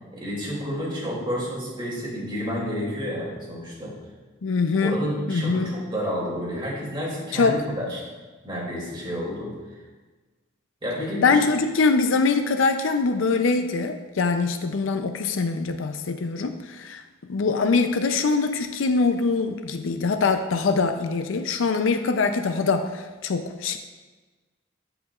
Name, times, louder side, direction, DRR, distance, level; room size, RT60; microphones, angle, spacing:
voice 1, 0.1-3.9 4.8-8.0 8.4-9.5 10.8-11.4, equal, 25° right, -5 dB, 2.5 m, -30 dB
voice 2, 4.4-5.7 7.3-7.6 11.2-17.0 17.3-23.8, left 4 dB, 75° left, 7 dB, 0.5 m, -23 dB
14.5 x 5.1 x 2.4 m, 1.3 s
head